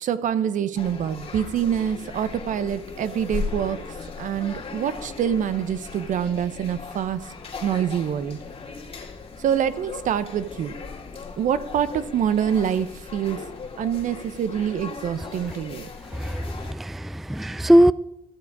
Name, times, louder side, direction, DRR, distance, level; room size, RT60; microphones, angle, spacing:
voice 1, 0.0-3.8 4.2-7.2 7.6-8.4 9.4-10.7 11.4-11.9 12.1-12.9 13.1-13.4 13.8-15.9, right 9 dB, 65° right, 0.8 m, -25 dB
sound 1, 0.8-16.7, left 5 dB, 40° left, 2.1 m, -37 dB
voice 2, 16.1-17.9, equal, ahead, 0.3 m, -20 dB
13.5 x 7.1 x 4.7 m
supercardioid pair, 60°, 14 cm